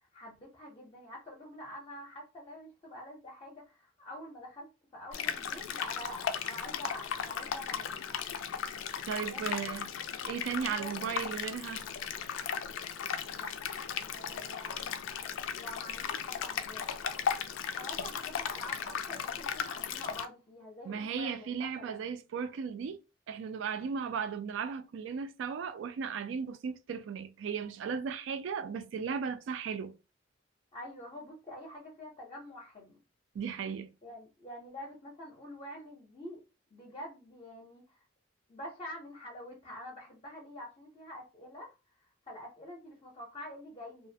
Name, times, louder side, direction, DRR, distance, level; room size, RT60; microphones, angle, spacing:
voice 1, 0.1-8.0 9.2-9.5 10.1-10.3 10.6-11.1 13.3-13.5 14.1-15.0 15.5-17.1 17.7-22.0 30.7-33.0 34.0-36.4 36.7-38.0 38.5-41.7 42.3-44.1, equal, 30° left, 0.5 m, -47 dB
sound 1, 5.1-20.3, left 7 dB, 90° left, 0.3 m, -36 dB
voice 2, 9.1-9.9 10.3-11.8 18.0-18.1 20.9-23.0 23.3-30.0 33.3-33.9, right 6 dB, 75° right, 0.3 m, -36 dB
2.3 x 2.0 x 2.6 m
head